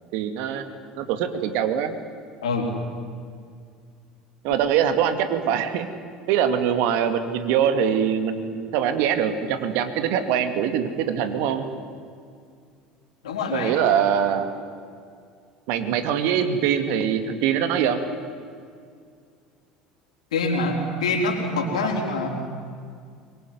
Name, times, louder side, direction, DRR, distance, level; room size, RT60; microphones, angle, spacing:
voice 1, 0.1-0.7 1.0-2.0 4.4-5.9 6.3-11.7 13.5-14.5 15.7-18.0, right 8 dB, 60° right, 8 dB, 2.5 m, -23 dB
voice 2, 13.2-13.7 20.3-22.3, left 2 dB, 75° left, 1 dB, 4.8 m, -25 dB
24.0 x 23.0 x 9.6 m, 2.2 s
figure-of-eight pair, 70°, 4 cm